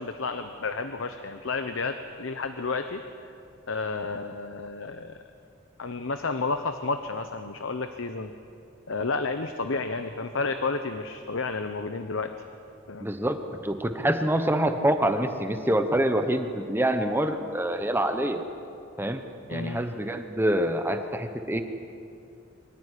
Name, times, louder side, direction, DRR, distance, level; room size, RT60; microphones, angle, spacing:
voice 1, 0.0-3.3 3.7-5.2 5.8-8.3 8.9-12.3 12.9-13.1 19.5-19.8, left 3 dB, 70° left, 8 dB, 0.9 m, -31 dB
voice 2, 13.0-18.4 19.0-19.2 19.5-21.6, right 1 dB, 10° right, 7 dB, 0.9 m, -26 dB
24.0 x 14.5 x 9.9 m, 2.6 s
head